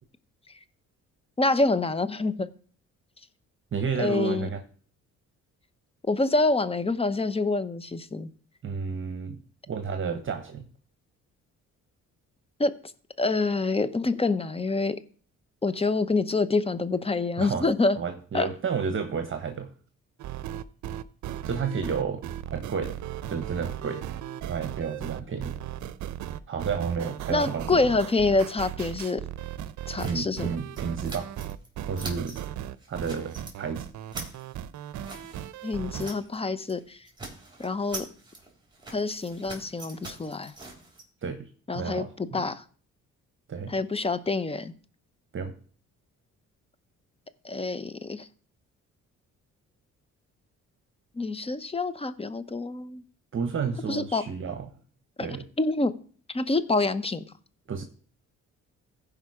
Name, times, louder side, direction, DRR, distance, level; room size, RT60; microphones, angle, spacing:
voice 1, 1.4-2.5 4.0-4.5 6.1-8.3 12.6-12.7 13.2-15.0 15.6-18.0 18.3-18.5 27.3-29.2 29.9-30.5 35.6-37.0 37.6-38.0 38.9-40.5 41.7-42.0 42.3-42.6 43.7-44.7 47.4-48.3 51.2-53.0 53.9-54.2 55.2-55.3 55.6-55.9 56.3-57.2, left 3 dB, 20° left, 0.8 m, -26 dB
voice 2, 3.7-4.6 8.6-9.4 9.7-10.7 17.4-17.7 18.0-19.7 21.4-22.2 22.5-23.0 23.3-24.0 24.5-25.6 26.5-27.8 30.0-31.3 31.9-32.4 32.9-33.9 41.2-41.5 41.7-42.5 43.5-43.7 45.3-45.5 53.3-54.7 55.2-55.4 57.7-57.8, right 6 dB, 45° right, 1.1 m, -31 dB
sound 1, 20.2-36.1, right 11 dB, 70° right, 0.6 m, -37 dB
sound 2, 30.0-31.7 31.9-32.5 32.8-33.6 33.9-36.4 36.6-36.8 37.1-41.0, right 2 dB, 15° right, 3.3 m, -43 dB
15.5 x 5.1 x 4.9 m
cardioid pair, 90°, 30 cm